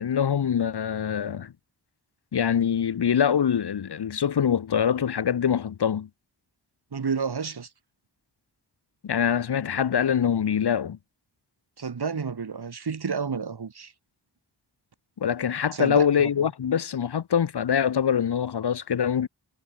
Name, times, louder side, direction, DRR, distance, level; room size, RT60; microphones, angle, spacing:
voice 1, 0.0-1.5 2.3-6.1 9.0-11.0 15.2-19.3, left 8 dB, 65° left, 0.9 m, -24 dB
voice 2, 6.9-7.7 11.8-13.9 15.7-16.3, right 5 dB, 60° right, 2.3 m, -30 dB
wide cardioid pair, 90°, 44 cm